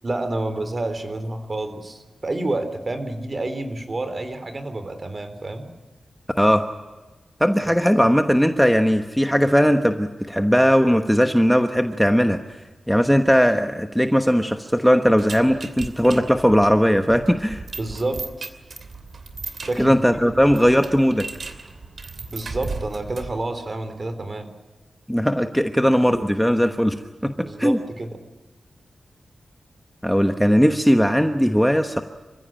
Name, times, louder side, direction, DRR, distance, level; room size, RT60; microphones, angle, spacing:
voice 1, 0.0-5.7 17.8-18.2 19.6-20.0 20.2-20.5 22.3-24.5 27.4-28.1, right 2 dB, 35° right, 9 dB, 3.6 m, -29 dB
voice 2, 7.4-12.4 12.9-17.6 19.8-21.3 25.1-27.0 27.2-27.8 30.0-32.0, equal, ahead, 6 dB, 1.2 m, -18 dB
sound 1, 15.2-23.4, right 4 dB, 65° right, 2.8 m, -36 dB
28.5 x 15.5 x 9.0 m, 1.2 s
wide cardioid pair, 105°, 0 cm